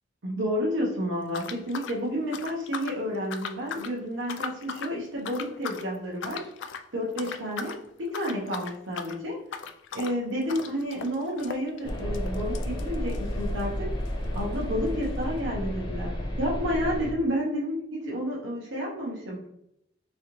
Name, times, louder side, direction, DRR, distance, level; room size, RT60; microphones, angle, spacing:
voice 1, 0.2-6.5 6.9-9.4 9.9-13.9 14.3-19.4, equal, 85° right, -4 dB, 0.9 m, -30 dB
sound 1, 1.3-3.0 3.3-3.9 4.2-4.9 5.2-5.9 6.2-6.9 7.2-7.8 8.1-13.8 14.0-14.1 14.3-14.4 15.1-15.2, left 6 dB, 80° left, 0.4 m, -38 dB
sound 2, 11.8-17.1, equal, 25° left, 0.7 m, -31 dB
3.8 x 3.1 x 2.9 m, 0.78 s
head